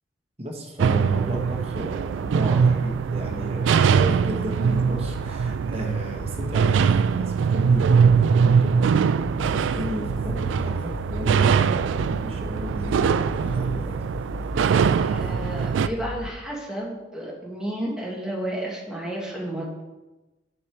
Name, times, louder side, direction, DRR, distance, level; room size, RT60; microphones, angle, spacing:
voice 1, 0.4-9.0 9.5-11.7 12.0-14.0 14.4-14.5, equal, 35° right, -1 dB, 1.3 m, -34 dB
sound 1, 0.8-15.9, right 6 dB, 90° right, 0.3 m, -22 dB
sound 2, 3.7-16.3, left 2 dB, 30° left, 0.4 m, -38 dB
voice 2, 15.0-19.8, right 1 dB, 5° right, -4 dB, 1.5 m, -32 dB
8.3 x 4.9 x 4.5 m, 1.1 s
head